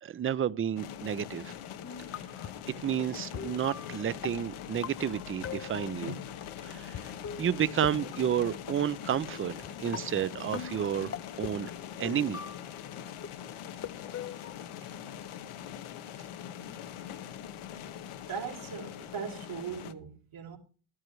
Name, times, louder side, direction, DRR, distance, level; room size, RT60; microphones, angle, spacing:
voice 1, 0.0-1.5 2.7-6.2 6.6-7.1 7.4-11.7 12.0-12.4, right 9 dB, 30° right, 0.5 m, -31 dB
sound 1, 0.8-19.9, left 9 dB, 80° left, 1.1 m, -42 dB
sound 2, 1.8-2.7 3.3-6.2 6.9-7.0 7.2-8.9 9.6-9.7 9.9-12.8 13.2-14.5, left 8 dB, 30° left, 0.5 m, -42 dB
voice 2, 18.3-20.6, right 7 dB, 80° right, 3.2 m, -39 dB
14.5 x 12.5 x 3.1 m
cardioid pair, 85°, 49 cm